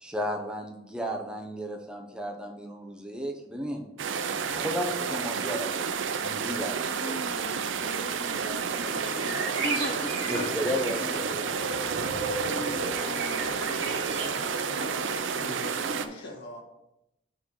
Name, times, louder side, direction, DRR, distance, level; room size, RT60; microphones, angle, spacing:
voice 1, 0.0-3.8 4.5-7.2 10.2-11.5, equal, 5° right, 1 dB, 0.7 m, -34 dB
sound 1, 4.0-16.1, right 6 dB, 90° right, 0.5 m, -31 dB
voice 2, 7.0-10.5 12.3-14.0 15.3-16.0, left 1 dB, 25° left, 3 dB, 0.5 m, -40 dB
sound 2, 8.7-15.2, right 2 dB, 70° right, 1.5 m, -35 dB
voice 3, 15.3-16.6, left 1 dB, 65° left, 1 dB, 1.6 m, -42 dB
6.1 x 3.9 x 6.2 m, 0.88 s
head